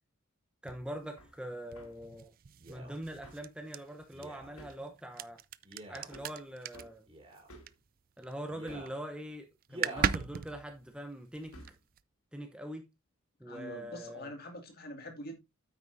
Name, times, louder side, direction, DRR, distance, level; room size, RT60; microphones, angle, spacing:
voice 1, 0.6-2.3 2.7-5.4 5.9-7.1 8.2-11.6 12.3-12.9 13.4-14.3, right 1 dB, 5° right, 0.9 m, -43 dB
sound 1, 0.7-8.3 8.6-9.1 9.4-9.5 9.6-12.0, right 7 dB, 40° right, 0.4 m, -39 dB
Hammer, 1.2-1.4 1.7-2.0 3.2-3.5 4.6-4.9 6.1-6.4 6.7-7.0 7.5-7.8 8.7-9.0 9.9-10.3 11.5-11.8, equal, 90° left, 2.7 m, -52 dB
Male speech man speaking, 2.6-3.0 4.1-4.5 5.6-6.2 7.1-7.5 8.5-9.0 9.7-10.2 10.9-11.0, right 2 dB, 25° right, 3.4 m, -47 dB
voice 2, 13.4-15.4, left 1 dB, 45° left, 2.3 m, -45 dB
9.4 x 8.4 x 2.7 m
head